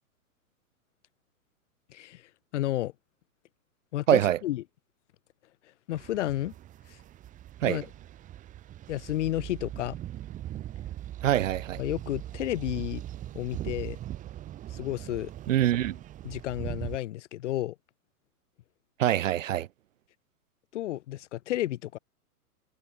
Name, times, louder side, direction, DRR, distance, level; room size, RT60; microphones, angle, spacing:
voice 1, 1.9-2.2 2.5-2.9 3.9-4.6 5.9-6.5 6.9-7.0 7.6-7.9 8.9-10.0 11.8-13.0 13.3-14.0 14.7-15.3 16.2-17.7 20.7-22.0, left 14 dB, 50° left, 1.3 m, -31 dB
voice 2, 4.1-4.4 7.6-7.8 11.2-11.8 15.5-16.0 19.0-19.7, right 12 dB, 55° right, 0.8 m, -24 dB
sound 1, 5.9-17.0, right 12 dB, 15° right, 1.0 m, -40 dB
figure-of-eight pair, 110°, 46 cm